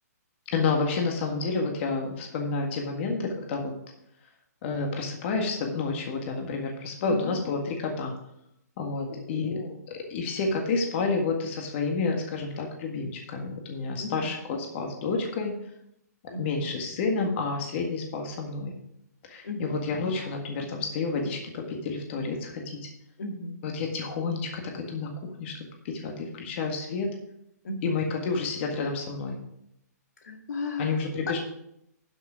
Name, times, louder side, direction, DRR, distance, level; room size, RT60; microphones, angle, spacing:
voice 1, 0.5-3.7 4.6-8.1 8.8-9.5 9.9-15.5 16.4-18.7 19.2-22.9 23.6-27.1 27.8-29.4 30.8-31.4, left 4 dB, 40° left, 2 dB, 1.8 m, -30 dB
voice 2, 7.0-7.4 9.1-9.8 14.0-14.2 16.3-16.7 19.4-19.8 23.2-23.6 27.6-28.1 30.2-31.0 31.3-31.4, left 2 dB, 70° left, 3 dB, 2.0 m, -35 dB
11.5 x 6.1 x 5.0 m, 0.78 s
hypercardioid pair, 145°, 9 cm